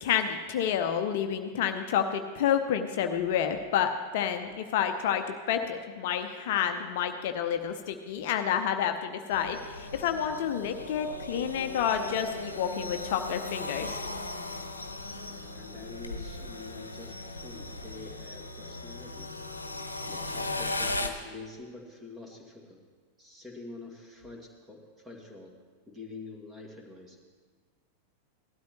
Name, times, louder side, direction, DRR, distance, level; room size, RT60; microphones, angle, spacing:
voice 1, 0.0-13.9, left 8 dB, 50° left, 7 dB, 0.7 m, -29 dB
sound 1, 9.3-21.1, left 2 dB, 80° left, 0.9 m, -37 dB
voice 2, 15.3-22.8 23.2-25.6 25.9-27.2, left 3 dB, 15° right, 1 dB, 2.3 m, -46 dB
18.0 x 12.5 x 3.2 m, 1.5 s
figure-of-eight pair, 90°, 0 cm